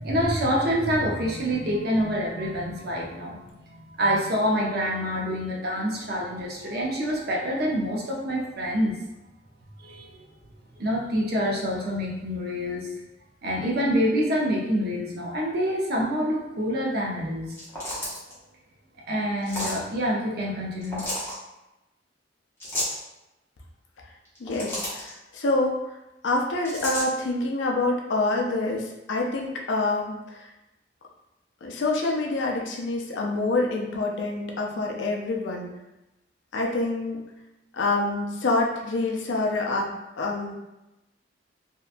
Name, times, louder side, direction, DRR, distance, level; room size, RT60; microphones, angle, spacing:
voice 1, 0.0-9.0 9.8-10.2 10.8-12.9 13.4-17.5 18.0-18.1 19.1-21.1, equal, 60° right, -2 dB, 0.6 m, -26 dB
sound 1, 17.5-18.3 19.4-19.8 20.8-21.3 22.6-23.0 24.2-25.1 26.6-27.1, left 1 dB, 15° left, 0.8 m, -31 dB
voice 2, 24.4-26.0 26.2-30.5 31.6-35.7 36.5-37.2 37.7-40.6, left 2 dB, 85° left, 0 dB, 0.5 m, -26 dB
2.7 x 2.2 x 2.4 m, 0.96 s
head